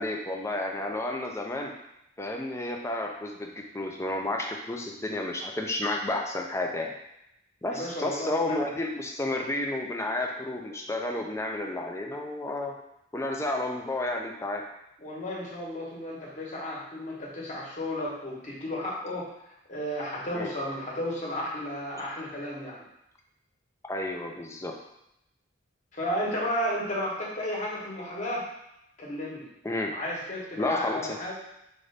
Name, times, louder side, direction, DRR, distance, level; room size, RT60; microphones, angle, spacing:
voice 1, 0.0-1.7 2.2-6.9 7.6-12.8 13.1-14.7 20.3-20.5 23.9-24.7 29.6-29.9 30.6-31.2, left 2 dB, 15° left, 1 dB, 0.5 m, -31 dB
voice 2, 7.7-8.6 15.0-19.3 19.7-22.8 25.9-28.5 29.0-29.5 29.9-31.3, left 1 dB, 40° left, -4 dB, 1.2 m, -33 dB
5.2 x 2.6 x 3.3 m, 0.82 s
head